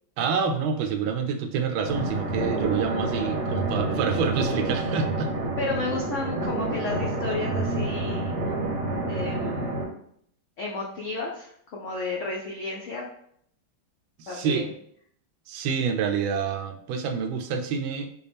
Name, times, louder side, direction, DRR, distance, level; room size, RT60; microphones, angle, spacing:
voice 1, 0.2-5.3 14.2-14.7 15.5-18.1, right 6 dB, 80° right, 5 dB, 1.4 m, -27 dB
sound 1, 1.8-9.8, right 2 dB, 50° right, 0.9 m, -28 dB
voice 2, 5.6-8.3 9.1-9.8 10.6-13.0 14.3-14.7, left 3 dB, 80° left, -2 dB, 0.6 m, -32 dB
6.7 x 2.3 x 3.4 m, 0.67 s
omnidirectional pair, 2.2 m